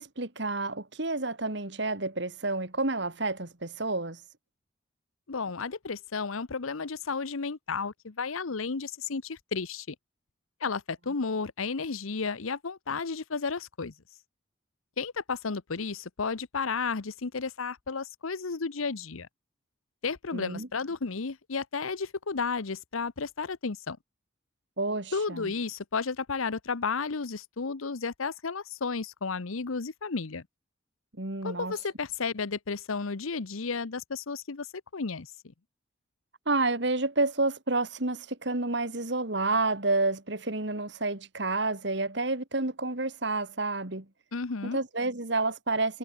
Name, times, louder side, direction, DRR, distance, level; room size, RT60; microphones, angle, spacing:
voice 1, 0.0-4.2 20.3-20.7 24.8-25.5 31.2-31.7 36.5-44.0 44.6-46.0, right 2 dB, 55° right, 2.2 m, -29 dB
voice 2, 5.3-9.9 10.6-13.9 15.0-19.3 20.0-24.0 25.1-30.4 31.4-34.7 34.9-35.3 44.3-44.8, left 4 dB, 90° left, 0.9 m, -33 dB
head